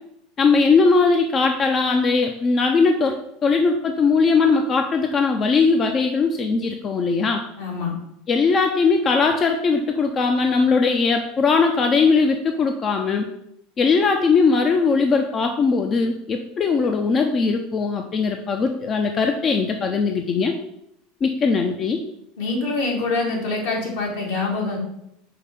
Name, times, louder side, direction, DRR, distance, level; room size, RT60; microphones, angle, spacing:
voice 1, 0.4-3.1 3.4-7.4 8.3-13.3 13.8-20.5 21.2-22.0, left 4 dB, 35° left, 4 dB, 0.6 m, -19 dB
voice 2, 7.6-7.9 22.4-24.8, left 3 dB, 75° left, -2 dB, 2.3 m, -25 dB
5.8 x 3.2 x 5.4 m, 0.79 s
hypercardioid pair, 80°, 0 cm